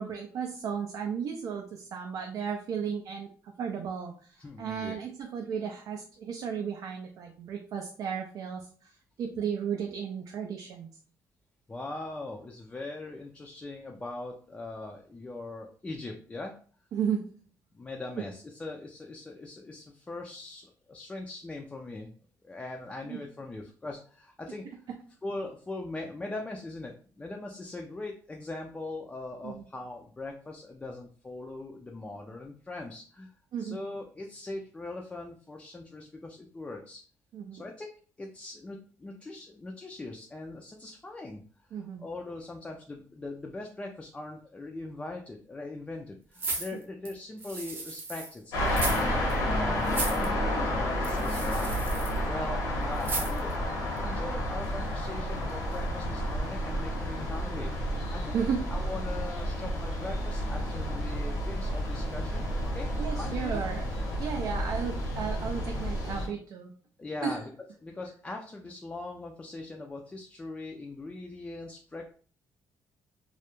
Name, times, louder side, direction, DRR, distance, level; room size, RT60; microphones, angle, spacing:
voice 1, 0.0-10.9 16.9-17.2 23.0-23.2 29.4-29.6 33.5-33.8 37.3-37.6 41.7-42.1 58.3-58.6 63.0-66.7 67.2-67.4, right 7 dB, 65° right, 2 dB, 0.4 m, -34 dB
voice 2, 4.4-5.0 11.7-16.5 17.7-22.1 22.4-24.9 25.2-33.3 33.6-37.0 37.5-37.9 38.2-51.7 52.1-53.5 54.0-57.7 58.1-58.4 58.7-62.5 62.7-62.9 63.2-63.6 67.0-67.5 67.8-72.1, left 2 dB, 15° left, 1 dB, 0.3 m, -40 dB
sound 1, 46.4-48.3 48.7-49.0 49.3-49.4 49.8-50.3 51.0-52.2 53.0-53.5 54.0-54.1, right 3 dB, 35° right, 0.7 m, -35 dB
sound 2, 48.5-66.3, equal, 80° left, 0.8 m, -31 dB
2.3 x 2.0 x 2.9 m, 0.43 s
cardioid pair, 110°, 6 cm